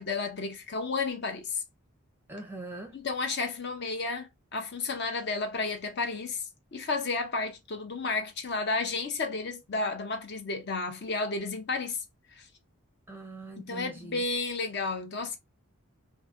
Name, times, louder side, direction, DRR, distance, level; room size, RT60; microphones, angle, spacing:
voice 1, 0.0-1.6 2.9-6.5 6.7-12.0 12.3-12.5 13.6-15.4, left 3 dB, 50° left, 0.6 m, -32 dB
voice 2, 2.3-3.0 13.1-14.3, right 2 dB, 10° right, 0.5 m, -42 dB
2.6 x 2.6 x 2.4 m
head